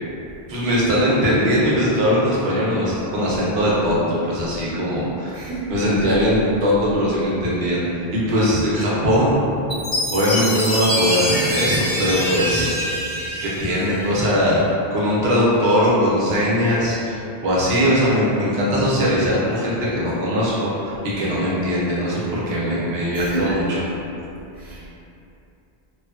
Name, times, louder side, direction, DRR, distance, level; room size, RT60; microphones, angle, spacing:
voice 1, 0.5-5.4 5.7-9.4 10.1-12.7 13.4-14.6 14.9-23.6, equal, 90° right, -7 dB, 1.0 m, -20 dB
voice 2, 5.3-5.8 23.2-23.6 24.5-24.9, right 4 dB, 50° right, -8 dB, 0.4 m, -30 dB
Chime, 9.7-14.3, equal, 50° left, 1.4 m, -25 dB
3.0 x 2.2 x 2.3 m, 2.8 s
omnidirectional pair, 1.0 m